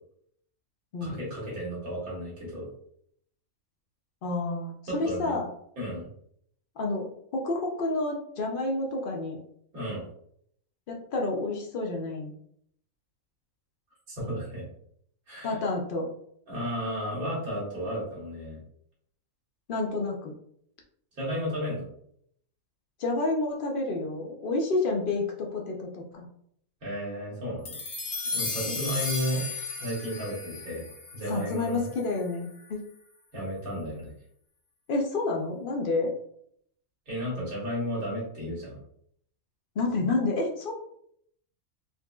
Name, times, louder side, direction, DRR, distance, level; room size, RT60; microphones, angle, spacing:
voice 1, 1.0-2.7 4.9-5.3 5.8-6.1 9.7-10.0 14.1-14.7 15.3-15.6 16.5-18.6 21.2-21.9 26.8-27.7 28.2-29.4 29.8-30.8 31.1-31.9 33.3-34.1 37.1-38.8, equal, 80° right, -6 dB, 2.0 m, -33 dB
voice 2, 4.2-5.5 6.8-7.1 7.3-9.4 10.9-12.3 15.4-16.1 19.7-20.3 23.0-26.3 28.6-28.7 31.3-32.8 34.9-36.1 39.8-40.7, left 2 dB, 65° left, 0 dB, 0.5 m, -29 dB
sound 1, 27.7-32.2, left 3 dB, 90° left, 1.4 m, -35 dB
3.9 x 2.6 x 2.2 m, 0.68 s
omnidirectional pair, 1.5 m